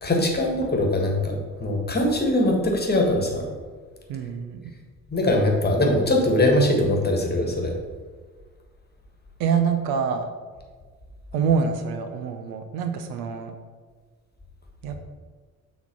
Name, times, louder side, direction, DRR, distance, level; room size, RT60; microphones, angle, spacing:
voice 1, 0.0-3.5 5.1-7.7, left 1 dB, 20° left, 1 dB, 1.6 m, -22 dB
voice 2, 4.1-4.7 9.4-10.3 11.3-13.5 14.8-15.0, right 6 dB, 55° right, 7 dB, 0.7 m, -25 dB
6.9 x 4.3 x 5.4 m, 1.5 s
figure-of-eight pair, 50°, 43 cm